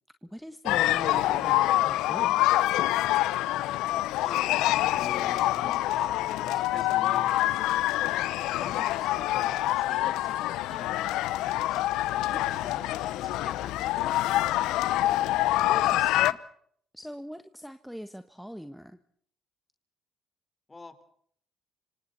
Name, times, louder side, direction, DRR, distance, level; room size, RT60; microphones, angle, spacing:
voice 1, 0.2-2.4 8.6-8.8 12.3-12.7 15.6-16.4 16.9-19.0, equal, ahead, 10 dB, 1.4 m, -42 dB
sound 1, 0.7-16.3, left 15 dB, 80° left, 0.9 m, -26 dB
voice 2, 4.2-7.9 8.3-11.9 12.5-14.9 20.7-21.0, left 3 dB, 20° left, 10 dB, 4.0 m, -46 dB
29.5 x 26.0 x 4.2 m, 0.63 s
supercardioid pair, 80°, 0 cm